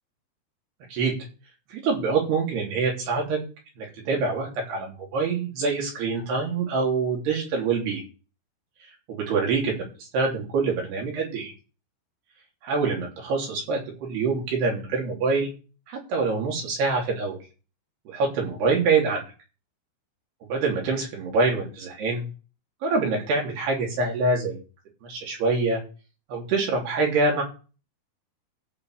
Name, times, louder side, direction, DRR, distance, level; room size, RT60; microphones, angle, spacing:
voice 1, 1.7-3.4 3.8-8.0 9.1-11.5 12.6-15.5 15.9-17.4 18.1-19.2 20.4-22.2 22.8-24.6 25.0-25.8 26.3-27.4, right 4 dB, 85° right, -1 dB, 5.3 m, -25 dB
14.5 x 5.1 x 7.3 m, 0.35 s
omnidirectional pair, 4.6 m